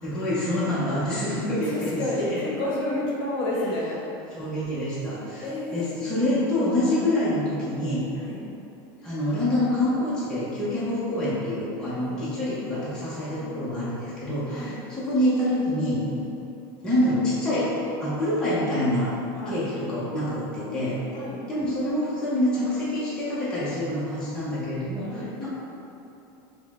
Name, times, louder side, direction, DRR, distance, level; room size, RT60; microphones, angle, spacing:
voice 1, 0.0-2.5 3.6-3.7 4.3-8.0 9.0-16.0 16.8-19.1 19.5-21.0 21.5-25.5, left 1 dB, 5° left, -11 dB, 0.7 m, -26 dB
voice 2, 1.7-4.0 5.4-6.2 8.3-8.4 12.0-12.2 13.4-13.9 14.5-14.7 16.1-16.2 19.4-19.6 20.6-21.4 25.1-25.3, left 1 dB, 45° left, -5 dB, 0.9 m, -31 dB
5.4 x 2.1 x 3.5 m, 2.9 s
supercardioid pair, 165°, 11 cm